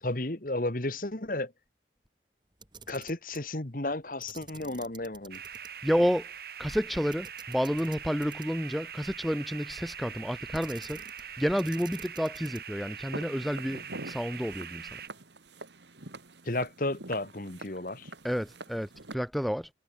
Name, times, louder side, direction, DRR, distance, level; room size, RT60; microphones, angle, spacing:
voice 1, 0.0-1.5 2.9-5.4 16.5-18.1, left 2 dB, 50° left, 1.8 m, -33 dB
Camera, 2.5-3.5 4.2-5.7 6.0-6.1 7.1-8.7 10.5-11.3 11.6-12.8, right 6 dB, 25° right, 3.1 m, -50 dB
sound 1, 5.3-15.1, right 8 dB, 55° right, 1.4 m, -43 dB
voice 2, 5.8-6.3 6.6-11.0 11.4-15.0 18.2-19.7, equal, ahead, 1.2 m, -30 dB
Walk footsteps, 13.1-19.1, right 2 dB, 75° right, 3.1 m, -45 dB
head